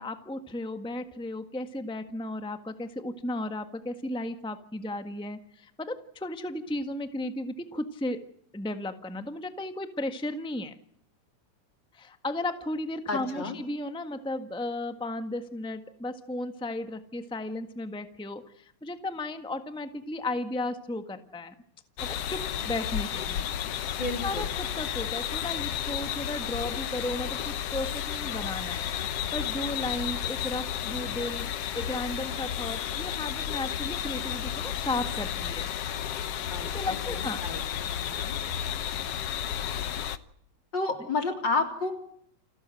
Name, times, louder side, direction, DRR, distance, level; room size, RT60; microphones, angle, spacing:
voice 1, 0.0-8.2 8.5-10.8 11.9-21.5 22.1-23.4 24.2-28.9 29.3-31.5 31.7-35.7 36.6-37.4, left 2 dB, 5° left, 8 dB, 0.4 m, -34 dB
voice 2, 13.1-13.6 24.0-24.5 36.5-38.4 40.7-42.0, left 3 dB, 35° left, 5 dB, 4.1 m, -32 dB
sound 1, 22.0-40.2, left 9 dB, 60° left, 1.8 m, -32 dB
29.5 x 14.0 x 9.2 m, 0.68 s
omnidirectional pair, 3.4 m